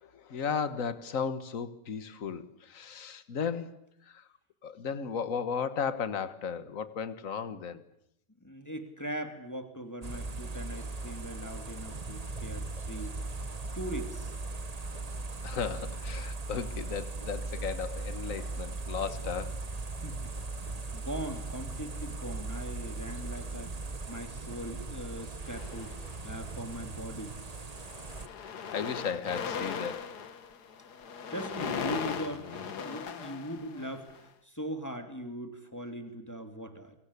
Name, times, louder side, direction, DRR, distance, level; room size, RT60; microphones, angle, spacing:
voice 1, 0.0-3.8 4.1-4.2 4.6-7.8 15.4-19.6 28.4-30.1, left 6 dB, 55° left, 13 dB, 1.8 m, -35 dB
voice 2, 8.4-13.1 13.7-14.3 20.0-20.3 20.6-23.8 24.1-27.3 31.3-36.9, right 1 dB, 10° left, 7 dB, 2.8 m, -40 dB
sound 1, 10.0-28.3, right 3 dB, 25° right, 1.2 m, -38 dB
sound 2, 25.4-26.4 27.2-27.4 27.7-34.2, left 6 dB, 75° left, 2.0 m, -38 dB
29.0 x 24.0 x 8.4 m, 0.77 s
omnidirectional pair, 1.7 m